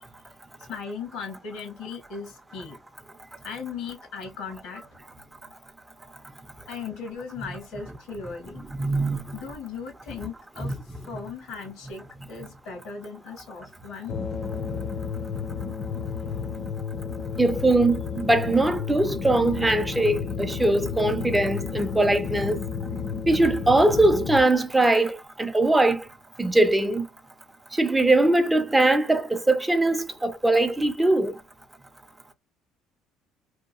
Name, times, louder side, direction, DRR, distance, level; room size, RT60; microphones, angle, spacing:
voice 1, 0.7-2.8 3.4-4.8 6.6-8.6 9.3-14.1, left 5 dB, 80° left, 1.0 m, -37 dB
voice 2, 8.8-9.4 10.6-10.7 17.4-22.6 23.3-26.0 26.4-27.1 27.8-31.3, right 2 dB, 10° right, 0.5 m, -21 dB
sound 1, 14.1-24.4, left 6 dB, 50° left, 0.5 m, -32 dB
2.8 x 2.3 x 2.4 m
cardioid pair, 95°, 0 cm